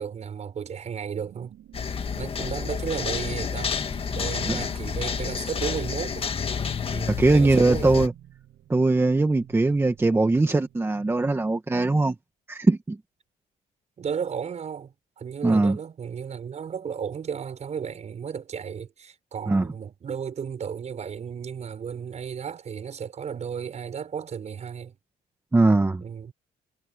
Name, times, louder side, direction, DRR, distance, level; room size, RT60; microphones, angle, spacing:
voice 1, 0.0-1.5 2.2-3.8 4.1-6.3 6.9-8.1 14.0-25.0 26.0-26.3, right 7 dB, 40° right, 6.2 m, -34 dB
sound 1, 1.1-11.3, right 12 dB, 65° right, 6.8 m, -52 dB
sound 2, 1.7-8.1, left 6 dB, 35° left, 1.8 m, -29 dB
voice 2, 7.1-8.1 8.7-12.2 12.5-13.0 15.4-15.8 19.5-19.7 25.5-26.0, right 2 dB, 15° right, 1.8 m, -21 dB
cardioid pair, 110°, 17 cm